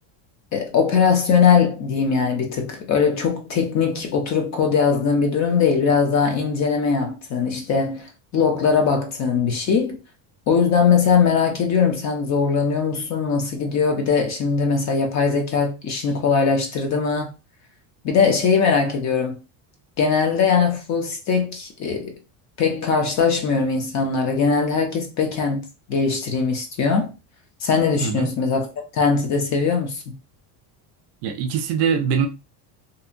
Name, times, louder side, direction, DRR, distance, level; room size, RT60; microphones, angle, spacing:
voice 1, 0.5-10.0 10.5-17.3 18.0-19.4 20.0-22.1 22.6-27.1 27.6-28.7 28.9-30.0, left 5 dB, 35° left, 0.5 m, -20 dB
voice 2, 31.2-32.3, right 7 dB, 55° right, 0.5 m, -22 dB
2.7 x 2.1 x 2.5 m
cardioid pair, 165°, 49 cm